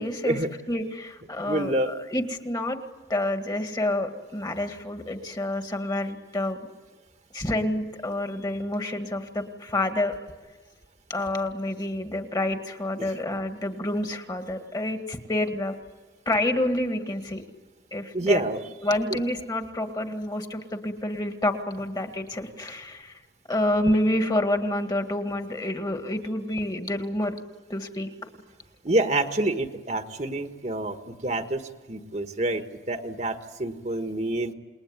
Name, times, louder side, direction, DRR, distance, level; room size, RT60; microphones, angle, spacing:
voice 1, 0.0-0.4 0.7-2.8 3.1-6.6 7.3-10.1 11.1-15.7 16.3-17.4 17.9-18.4 18.8-23.2 23.5-27.4 27.7-28.1, left 1 dB, 25° left, 6 dB, 2.0 m, -28 dB
voice 2, 1.4-1.9 13.0-13.1 18.1-18.6 19.1-19.2 28.8-34.5, right 1 dB, 40° right, 6 dB, 1.5 m, -27 dB
28.5 x 20.5 x 9.8 m, 1.3 s
head